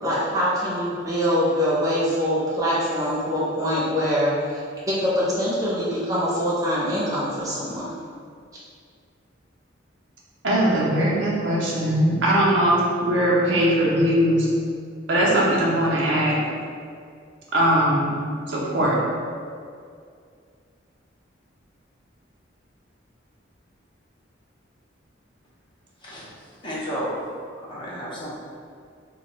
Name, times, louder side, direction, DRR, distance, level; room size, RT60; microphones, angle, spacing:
voice 1, 0.0-4.6 4.9-7.9, equal, 15° right, -9 dB, 0.7 m, -24 dB
voice 2, 10.4-14.5 15.1-16.3 17.5-19.0, right 1 dB, 70° right, -5 dB, 0.6 m, -20 dB
voice 3, 26.6-27.1 27.7-28.3, equal, 25° left, -8 dB, 0.6 m, -32 dB
2.2 x 2.2 x 3.8 m, 2.2 s
head